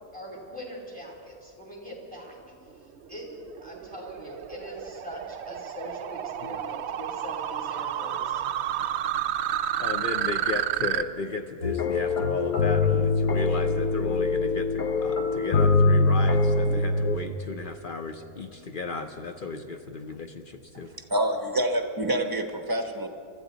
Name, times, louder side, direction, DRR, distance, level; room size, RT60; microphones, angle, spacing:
voice 1, 0.1-8.4, equal, 5° left, -1 dB, 2.9 m, -42 dB
sound 1, 3.0-11.0, right 11 dB, 65° right, 0.6 m, -31 dB
voice 2, 9.8-20.9, left 4 dB, 50° left, 6 dB, 0.6 m, -35 dB
sound 2, 11.6-17.2, left 3 dB, 75° left, 1.4 m, -23 dB
voice 3, 20.9-23.1, right 1 dB, 15° right, 5 dB, 0.9 m, -27 dB
23.0 x 13.5 x 4.0 m, 2.4 s
omnidirectional pair, 1.6 m